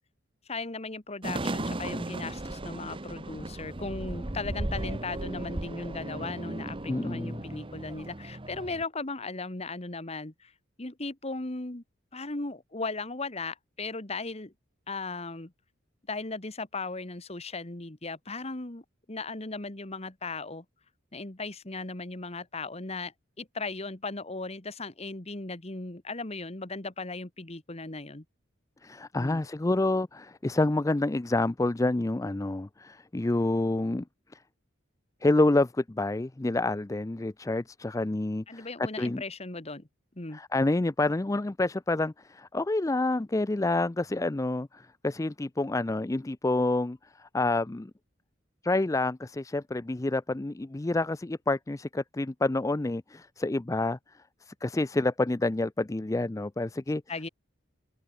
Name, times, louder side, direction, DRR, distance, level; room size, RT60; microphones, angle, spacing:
voice 1, 0.5-10.5 10.8-11.8 12.1-14.5 14.9-15.5 16.1-20.7 21.1-28.2 29.2-29.4 38.5-39.9 40.2-40.4 57.1-57.3, left 3 dB, 30° left, 1.6 m, -37 dB
sound 1, 1.2-8.8, right 1 dB, 25° right, 1.1 m, -36 dB
voice 2, 6.9-7.4 28.8-34.0 35.2-38.7 39.0-39.2 40.3-47.9 48.6-54.0 54.5-57.0, left 2 dB, 15° left, 0.4 m, -28 dB
open air
head